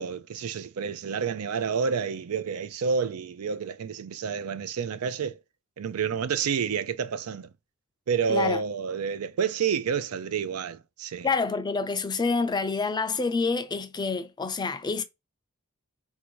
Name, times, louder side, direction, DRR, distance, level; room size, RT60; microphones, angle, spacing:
voice 1, 0.0-5.4 5.8-7.5 8.1-11.3, right 6 dB, 80° right, 0.4 m, -29 dB
voice 2, 8.3-8.6 11.2-15.0, left 4 dB, 20° left, 0.4 m, -27 dB
3.3 x 2.7 x 4.6 m
head